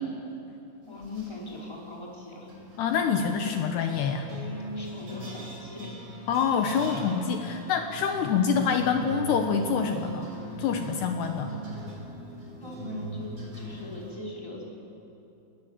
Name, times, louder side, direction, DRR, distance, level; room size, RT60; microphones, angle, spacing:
voice 1, 0.9-2.5 4.7-5.9 12.6-14.7, left 3 dB, 5° left, -4 dB, 4.4 m, -40 dB
sound 1, 0.9-1.5 2.5-14.1, right 2 dB, 25° right, 5.4 m, -40 dB
voice 2, 2.8-4.3 6.3-10.3 10.6-11.5, left 6 dB, 75° left, 5 dB, 3.1 m, -26 dB
30.0 x 20.0 x 7.5 m, 2.9 s
omnidirectional pair, 5.1 m